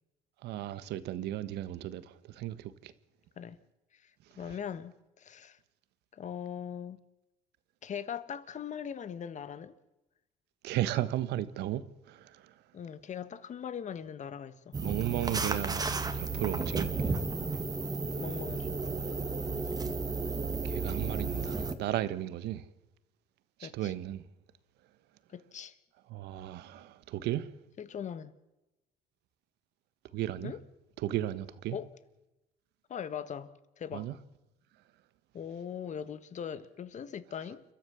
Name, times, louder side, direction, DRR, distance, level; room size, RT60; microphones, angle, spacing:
voice 1, 0.4-2.9 10.6-11.8 12.1-12.5 14.8-15.9 16.1-17.2 20.6-22.6 23.6-24.2 26.1-27.5 30.1-30.5 31.0-31.8 33.9-34.2, right 13 dB, 80° right, 1.4 m, -35 dB
voice 2, 4.3-5.6 6.1-7.0 7.8-9.8 12.7-14.8 18.2-18.8 23.6-23.9 25.3-25.7 27.8-28.3 30.4-30.6 31.7-31.9 32.9-34.1 35.3-37.6, left 8 dB, 45° left, 1.6 m, -40 dB
sound 1, 14.7-21.7, right 4 dB, 20° right, 2.0 m, -33 dB
29.5 x 13.5 x 7.1 m
cardioid pair, 110°, 17 cm